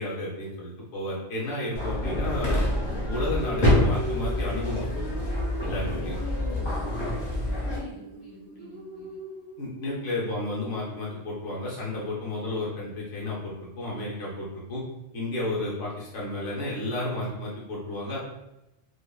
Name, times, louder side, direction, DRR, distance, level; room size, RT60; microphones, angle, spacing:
voice 1, 0.0-2.6 3.1-5.0 5.6-6.1 9.6-14.8 15.1-18.2, left 1 dB, 85° left, -5 dB, 1.1 m, -32 dB
sound 1, 1.7-7.8, left 1 dB, 40° left, 1.0 m, -27 dB
sound 2, 3.0-10.1, right 1 dB, 75° right, 1.0 m, -40 dB
voice 2, 5.9-7.0 7.6-9.2, left 3 dB, 60° left, -5 dB, 1.3 m, -43 dB
5.2 x 2.0 x 2.3 m, 0.92 s
omnidirectional pair, 1.2 m